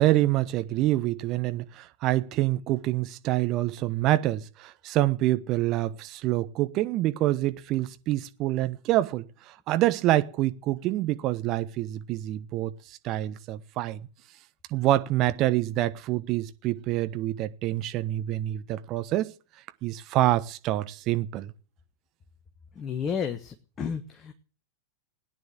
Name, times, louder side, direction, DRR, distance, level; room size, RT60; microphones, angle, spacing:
voice 1, 0.0-14.1 14.7-19.3 19.8-21.5, right 15 dB, 40° right, 1.1 m, -26 dB
voice 2, 22.8-24.3, left 7 dB, 25° left, 1.3 m, -32 dB
17.5 x 9.7 x 7.8 m
figure-of-eight pair, 90°, 0 cm